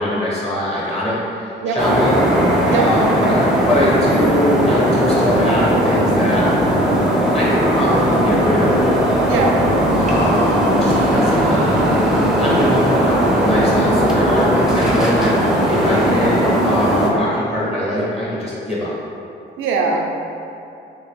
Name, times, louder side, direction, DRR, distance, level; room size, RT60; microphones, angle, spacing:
voice 1, 0.0-2.1 2.7-3.4 3.7-6.5 7.3-8.8 10.0-11.9 12.4-16.4 16.6-18.9, left 1 dB, 30° left, -7 dB, 1.0 m, -22 dB
sound 1, 1.8-17.1, equal, ahead, 0.5 m, -17 dB
voice 2, 9.2-9.6 19.6-20.2, right 4 dB, 75° right, 1 dB, 0.5 m, -20 dB
3.0 x 2.8 x 3.0 m, 2.7 s
cardioid pair, 90°, 20 cm